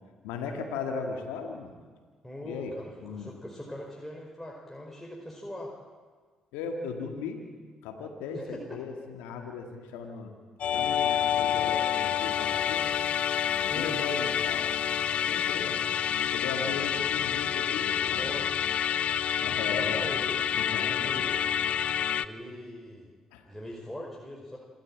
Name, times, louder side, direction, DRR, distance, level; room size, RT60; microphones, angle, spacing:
voice 1, 0.2-1.7 2.4-3.3 6.5-7.4 7.8-10.3 10.6-12.8 13.6-14.7 15.1-15.8 16.1-18.3 19.4-20.2 20.6-21.3 23.3-23.5, left 5 dB, 80° left, 3 dB, 2.1 m, -37 dB
voice 2, 2.2-5.7 8.3-8.8 13.7-14.0 18.1-18.6 19.4-20.4 20.8-21.4 22.2-23.1 23.4-24.6, left 1 dB, 5° left, -2 dB, 5.0 m, -41 dB
Musical instrument, 10.6-22.3, left 9 dB, 60° left, 0.6 m, -28 dB
27.0 x 13.0 x 8.8 m, 1.5 s
hypercardioid pair, 50°, 2 cm